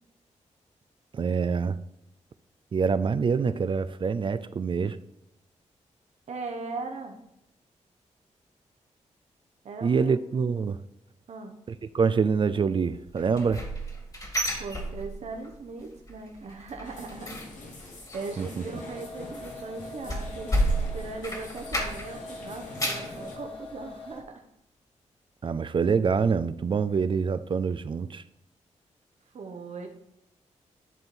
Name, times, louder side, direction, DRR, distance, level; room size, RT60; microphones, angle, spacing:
voice 1, 1.1-1.8 2.7-5.0 9.8-10.8 11.9-13.6 18.4-18.6 25.4-28.2, right 5 dB, 40° right, 0.4 m, -25 dB
voice 2, 6.3-7.2 9.6-10.1 11.3-11.6 14.6-20.6 20.9-24.4 29.3-29.9, right 3 dB, 65° right, 1.0 m, -39 dB
sound 1, 13.2-15.5 15.8-16.1 16.4-22.2 22.5-23.2 23.6-23.7 24.2-24.3, right 1 dB, 30° left, 1.9 m, -31 dB
sound 2, 16.8-23.4, left 2 dB, 85° left, 1.6 m, -45 dB
sound 3, 18.7-24.4, left 2 dB, 45° left, 1.4 m, -44 dB
11.0 x 3.7 x 4.3 m
cardioid pair, 75°, 13 cm